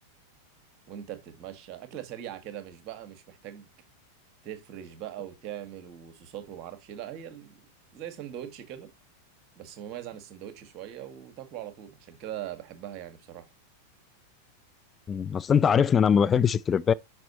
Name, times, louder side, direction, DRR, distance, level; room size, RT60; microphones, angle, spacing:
voice 1, 0.9-3.7 4.4-7.6 7.9-8.9 9.5-13.5, right 11 dB, 40° right, 1.6 m, -41 dB
voice 2, 15.1-16.9, left 7 dB, 20° left, 0.3 m, -22 dB
6.0 x 5.3 x 4.2 m
figure-of-eight pair, 90°, 0 cm